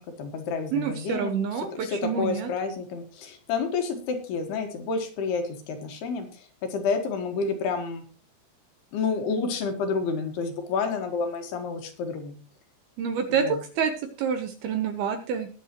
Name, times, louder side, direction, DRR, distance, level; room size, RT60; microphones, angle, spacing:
voice 1, 0.0-1.3 1.8-8.0 8.9-12.3 13.3-13.6 15.1-15.2, left 4 dB, 65° left, 5 dB, 3.4 m, -29 dB
voice 2, 0.7-2.5 13.0-13.9 14.2-15.5, right 7 dB, 70° right, 7 dB, 2.5 m, -27 dB
20.5 x 8.1 x 3.0 m, 0.37 s
omnidirectional pair, 5.5 m